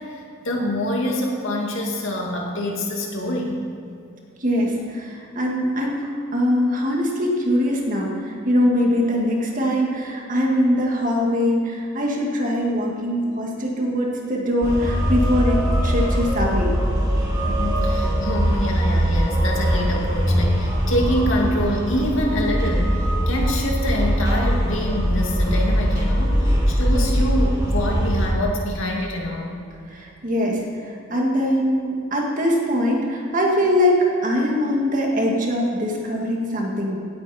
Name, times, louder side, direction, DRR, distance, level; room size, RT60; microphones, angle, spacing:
voice 1, 0.0-3.6 17.4-29.5, left 1 dB, 70° left, -1 dB, 2.2 m, -25 dB
voice 2, 4.4-16.7 26.9-27.1 29.9-37.0, equal, 40° right, -1 dB, 2.0 m, -22 dB
sound 1, 14.6-28.3, equal, 20° right, 1.9 m, -21 dB
17.0 x 9.1 x 4.3 m, 2.6 s
head